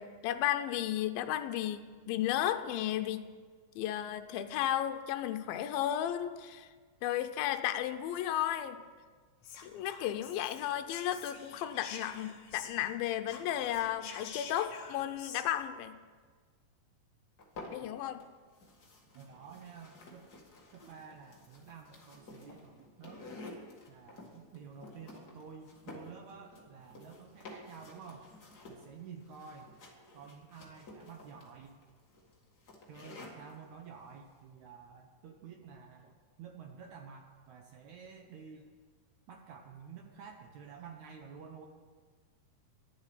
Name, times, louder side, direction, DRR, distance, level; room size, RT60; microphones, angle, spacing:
voice 1, 0.0-3.2 3.8-6.7 7.0-8.8 9.6-16.0 17.7-18.2, left 12 dB, 85° left, 8 dB, 2.5 m, -34 dB
Whispering, 9.4-13.0 13.2-15.5, left 7 dB, 65° left, 2.1 m, -48 dB
sound 1, 17.4-18.2 18.5-33.5, left 2 dB, 35° left, 1.8 m, -51 dB
voice 2, 19.1-20.3 20.7-23.3 23.9-28.3 28.7-29.8 30.1-31.8 32.9-38.7 39.3-41.7, right 6 dB, 70° right, 3 dB, 1.8 m, -51 dB
12.0 x 7.7 x 9.8 m, 1.5 s
omnidirectional pair, 4.2 m